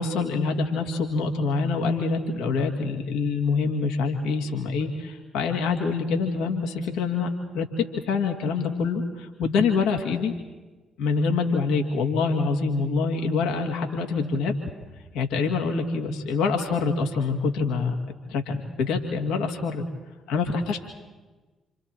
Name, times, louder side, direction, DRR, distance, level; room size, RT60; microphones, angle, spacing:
voice 1, 0.0-7.3 7.5-10.3 11.0-14.5 15.1-17.9 18.3-19.8 20.3-20.8, left 4 dB, 65° left, 3 dB, 2.4 m, -25 dB
28.0 x 27.5 x 4.5 m, 1.2 s
figure-of-eight pair, 40°, 0 cm